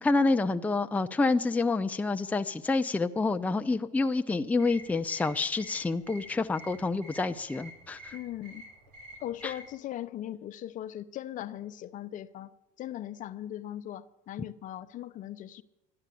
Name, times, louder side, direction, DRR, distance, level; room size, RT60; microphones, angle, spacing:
voice 1, 0.0-8.1 9.4-9.5, left 3 dB, 10° left, 0.6 m, -28 dB
sound 1, 4.6-9.7, right 1 dB, 70° right, 6.5 m, -49 dB
voice 2, 8.1-8.6 9.2-12.5 12.8-15.6, left 12 dB, 50° left, 0.7 m, -39 dB
13.5 x 10.5 x 8.4 m
supercardioid pair, 105°, 17 cm